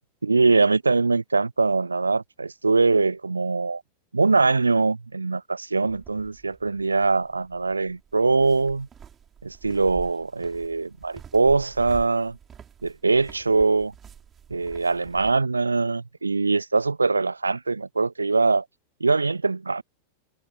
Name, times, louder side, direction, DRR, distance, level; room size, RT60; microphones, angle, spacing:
voice 1, 0.2-3.8 4.1-8.9 9.4-12.4 12.8-13.9 14.5-18.6 19.0-19.8, right 3 dB, 80° right, 0.7 m, -22 dB
sound 1, 5.9-15.4, right 8 dB, 25° right, 6.7 m, -47 dB
figure-of-eight pair, 90°, 0 cm